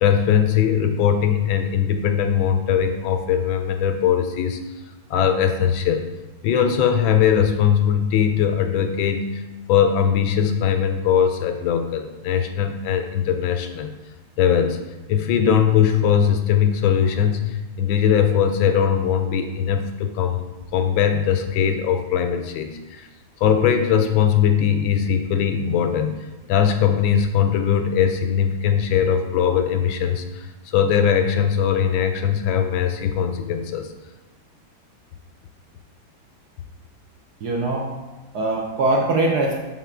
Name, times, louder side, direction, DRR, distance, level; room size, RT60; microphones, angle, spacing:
voice 1, 0.0-4.6 5.1-6.1 6.4-9.4 9.7-13.9 14.4-14.8 15.1-20.4 20.7-23.1 23.4-26.2 26.5-33.9, left 8 dB, 80° left, 7 dB, 1.3 m, -20 dB
voice 2, 37.4-38.0 38.3-39.6, right 2 dB, 65° right, 0 dB, 1.1 m, -22 dB
5.7 x 5.7 x 3.6 m, 1.1 s
omnidirectional pair, 2.3 m